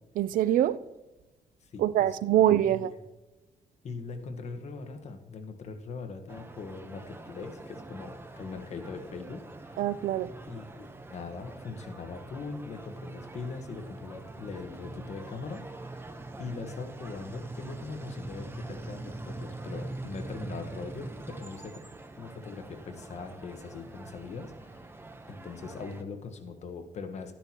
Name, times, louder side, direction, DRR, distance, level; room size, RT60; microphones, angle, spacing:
voice 1, 0.2-0.8 1.8-2.9 9.8-10.3, right 12 dB, 85° right, 0.4 m, -24 dB
voice 2, 3.8-9.8 10.5-15.6 15.9-21.8 22.2-24.9 25.3-27.3, left 4 dB, 55° left, 1.3 m, -41 dB
sound 1, 6.3-26.0, right 2 dB, 15° right, 0.8 m, -43 dB
12.5 x 10.0 x 2.9 m
cardioid pair, 120°, 14 cm